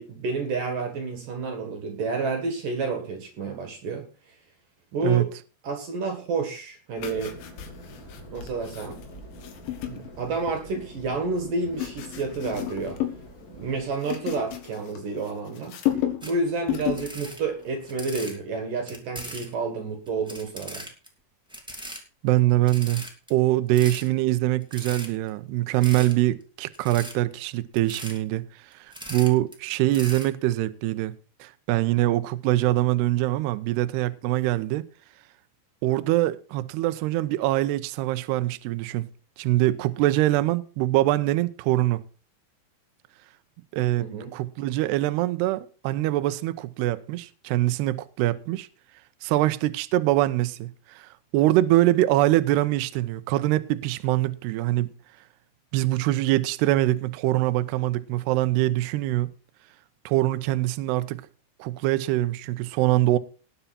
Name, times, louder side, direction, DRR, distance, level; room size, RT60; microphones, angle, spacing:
voice 1, 0.0-4.0 4.9-5.3 5.6-7.3 8.3-9.0 9.9-13.0 13.5-15.8 16.2-20.8 44.0-44.3, right 3 dB, 55° right, 2.7 m, -30 dB
sound 1, 7.0-10.9 11.4-13.3 13.6-15.3 15.6-16.3 16.6-17.1 17.5-17.7, left 13 dB, 70° left, 3.9 m, -33 dB
sound 2, 7.0-13.9, right 1 dB, 20° left, 4.2 m, -46 dB
sound 3, 16.2-16.3 16.8-18.4 18.9-19.5 20.1-21.1 21.5-22.0 22.4-22.5 22.7-23.3 23.7-24.1 24.6-25.3 25.8-26.1 26.7-27.1 27.7-28.2 28.7-29.5 29.9-30.3, equal, 5° right, 0.4 m, -39 dB
voice 2, 22.2-23.0 23.3-28.4 29.1-31.1 31.4-34.8 35.8-39.1 39.4-42.0 43.7-44.1 44.3-48.7 49.2-54.9 55.7-59.3 60.1-61.2 61.6-63.2, right 16 dB, 80° right, 2.4 m, -23 dB
19.0 x 7.1 x 4.3 m
omnidirectional pair, 5.7 m